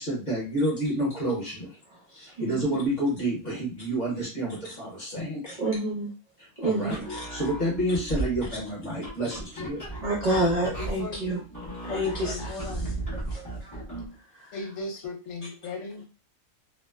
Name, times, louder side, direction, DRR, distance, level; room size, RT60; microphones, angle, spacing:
voice 1, 0.0-1.8 2.1-5.6 6.6-7.0 7.3-9.9, right 1 dB, 35° left, -5 dB, 0.9 m, -29 dB
voice 2, 2.4-2.8 5.5-6.1 6.6-7.2 10.0-11.4 11.8-13.8 14.3-14.6 15.4-15.5, right 1 dB, 75° right, -4 dB, 0.3 m, -29 dB
sound 1, 6.8-14.1, right 2 dB, 20° left, 0.5 m, -36 dB
voice 3, 11.0-11.4 11.9-12.9 14.5-16.0, left 3 dB, 65° left, 0 dB, 1.1 m, -37 dB
2.9 x 2.0 x 2.2 m, 0.34 s
omnidirectional pair, 1.6 m